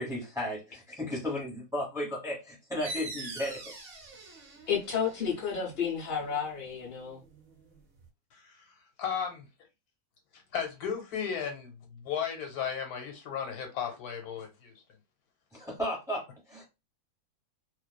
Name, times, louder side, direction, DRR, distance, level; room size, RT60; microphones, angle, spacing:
voice 1, 0.0-3.7 15.5-16.6, left 1 dB, 5° right, 1.0 m, -34 dB
sound 1, 2.8-8.1, right 2 dB, 50° right, 0.8 m, -45 dB
voice 2, 4.7-7.2, left 7 dB, 55° left, 0.6 m, -31 dB
voice 3, 9.0-9.5 10.5-14.7, left 7 dB, 85° left, 1.2 m, -35 dB
2.4 x 2.3 x 2.2 m
omnidirectional pair, 1.6 m